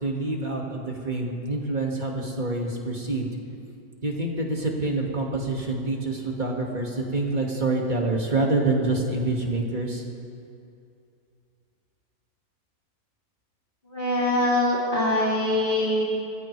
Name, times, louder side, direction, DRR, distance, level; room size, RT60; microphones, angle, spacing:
voice 1, 0.0-3.3 4.0-10.0, right 2 dB, 25° right, -1 dB, 2.0 m, -26 dB
voice 2, 13.9-16.0, left 1 dB, 25° left, -6 dB, 3.2 m, -23 dB
28.5 x 15.0 x 3.3 m, 2.5 s
omnidirectional pair, 2.1 m